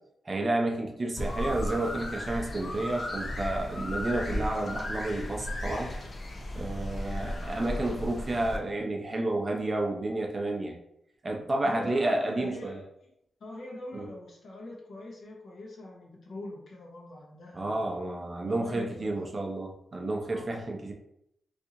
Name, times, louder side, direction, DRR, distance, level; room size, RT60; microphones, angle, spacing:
voice 1, 0.2-5.9 6.5-10.8 11.2-12.8 13.9-14.0 17.5-20.9, right 2 dB, 30° right, 1 dB, 0.5 m, -31 dB
sound 1, 1.2-8.6, left 1 dB, 40° left, 0.6 m, -35 dB
voice 2, 11.6-13.1 13.4-17.9 18.4-19.3 20.3-20.5, left 1 dB, 60° left, -1 dB, 0.9 m, -43 dB
4.1 x 2.7 x 2.5 m, 0.77 s
wide cardioid pair, 135°, 0 cm